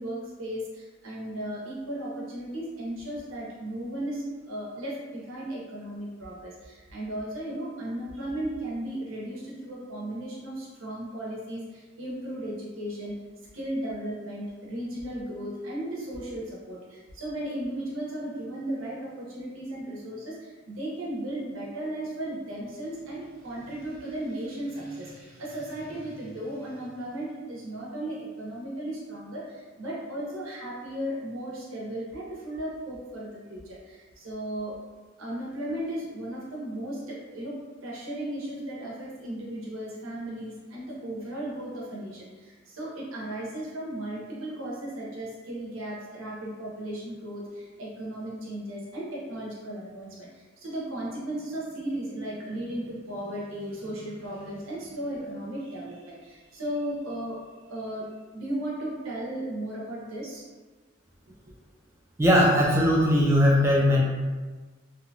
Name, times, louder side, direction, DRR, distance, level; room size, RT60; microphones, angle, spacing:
voice 1, 0.0-13.1 13.5-34.8 35.2-57.4 57.7-58.1 58.3-60.4, right 1 dB, 90° right, -4 dB, 0.8 m, -35 dB
voice 2, 62.2-64.0, equal, 15° right, -3 dB, 0.3 m, -19 dB
2.8 x 2.2 x 2.6 m, 1.3 s
head